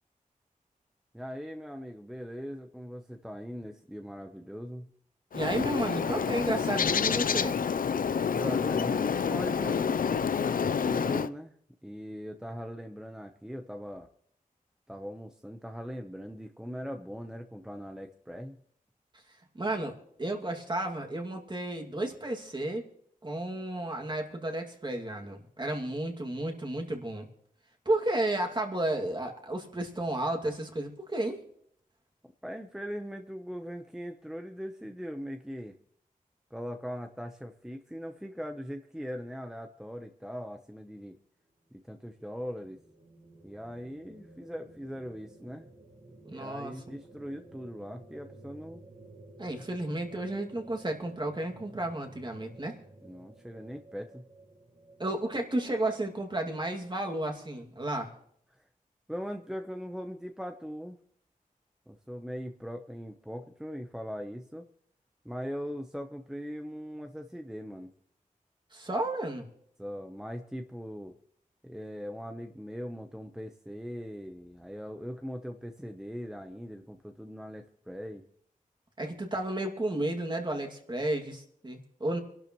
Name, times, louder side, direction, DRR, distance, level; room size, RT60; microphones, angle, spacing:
voice 1, 1.1-4.9 8.1-10.0 10.8-11.5 11.8-14.1 14.9-18.6 32.4-35.8 36.5-41.2 41.7-42.8 43.4-45.7 46.3-48.8 53.0-54.2 58.5-58.7 59.1-61.0 61.9-64.7 65.2-67.9 69.8-71.1 71.6-78.3, equal, 5° right, 5 dB, 0.9 m, -40 dB
Bird, 5.3-11.3, left 6 dB, 75° left, 0.5 m, -28 dB
voice 2, 5.3-7.6 19.5-22.8 23.2-27.2 27.9-31.4 46.2-46.7 49.4-52.8 55.0-58.1 68.7-69.5 79.0-82.2, right 1 dB, 30° right, 2 dB, 2.3 m, -32 dB
sound 1, 41.5-57.4, right 2 dB, 55° right, 3.9 m, -54 dB
26.0 x 12.0 x 3.1 m, 0.69 s
wide cardioid pair, 85°, 14 cm